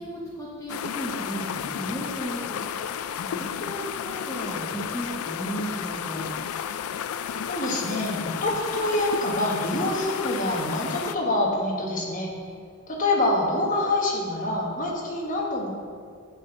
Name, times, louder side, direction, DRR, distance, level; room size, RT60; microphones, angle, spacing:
voice 1, 0.0-2.6 3.3-6.3 12.5-12.6, right 1 dB, 15° left, -6 dB, 1.0 m, -35 dB
sound 1, 0.7-11.2, left 8 dB, 75° left, 0.3 m, -32 dB
voice 2, 7.4-12.5 12.9-15.7, left 1 dB, 35° left, -2 dB, 1.4 m, -26 dB
8.2 x 4.3 x 7.1 m, 2.1 s
head